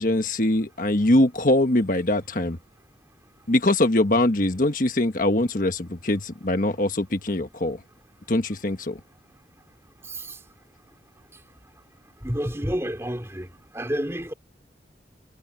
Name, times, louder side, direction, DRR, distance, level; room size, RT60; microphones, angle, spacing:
voice 1, 0.0-2.6 3.5-7.8 8.3-9.0, left 1 dB, 50° left, 1.4 m, -22 dB
voice 2, 10.1-10.4 12.2-13.5 13.7-14.3, equal, 15° right, 3.5 m, -29 dB
head